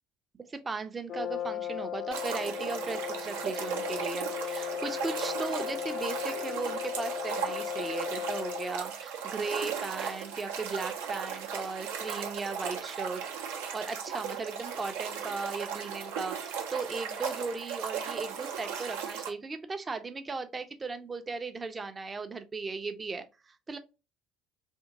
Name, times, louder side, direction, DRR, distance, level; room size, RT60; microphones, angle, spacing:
voice 1, 0.4-23.8, right 4 dB, 25° right, 0.6 m, -37 dB
Brass instrument, 1.1-8.9, left 11 dB, 50° left, 0.6 m, -36 dB
sound 1, 2.1-19.3, right 7 dB, 70° right, 0.6 m, -37 dB
3.6 x 2.8 x 2.7 m
figure-of-eight pair, 60°, 0 cm